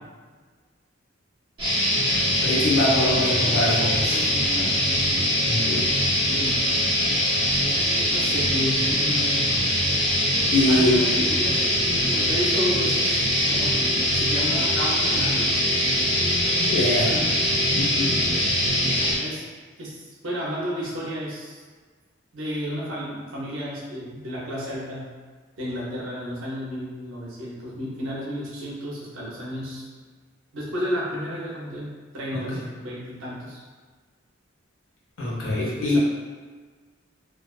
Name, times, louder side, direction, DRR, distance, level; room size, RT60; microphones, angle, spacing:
sound 1, 1.6-19.1, equal, 25° right, 0.8 m, -22 dB
voice 1, 2.4-4.2 5.4-5.8 10.5-11.0 16.6-17.1 17.7-18.2 32.3-32.6 35.2-36.0, left 1 dB, 90° left, -5 dB, 0.7 m, -23 dB
voice 2, 3.4-3.8 4.1-5.0 6.3-6.6 7.8-9.5 10.7-13.2 13.5-13.8 14.1-15.5 17.0-17.3 19.0-19.4 19.8-21.6 22.3-25.1 25.6-29.8 30.5-33.6 35.6-36.0, equal, 80° right, -6 dB, 0.6 m, -32 dB
2.3 x 2.3 x 2.3 m, 1.5 s
head